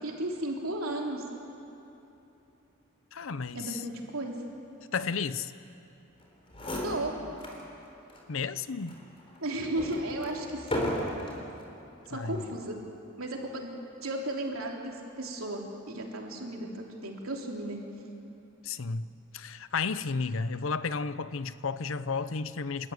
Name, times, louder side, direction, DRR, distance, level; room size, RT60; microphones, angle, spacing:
voice 1, 0.0-1.2 3.5-4.6 6.8-7.2 9.4-10.9 12.1-12.8 13.2-13.7 14.0-17.8, right 1 dB, 90° right, 0 dB, 3.3 m, -34 dB
voice 2, 3.1-3.8 4.9-5.5 8.3-9.0 12.1-12.4 18.6-19.1 19.3-22.9, left 5 dB, 70° left, 14 dB, 0.7 m, -32 dB
sound 1, 6.2-6.3 6.5-7.6 8.1-8.2 8.9-11.5 12.2-12.6, left 1 dB, 25° left, 4.0 m, -35 dB
29.0 x 13.5 x 9.6 m, 2.9 s
head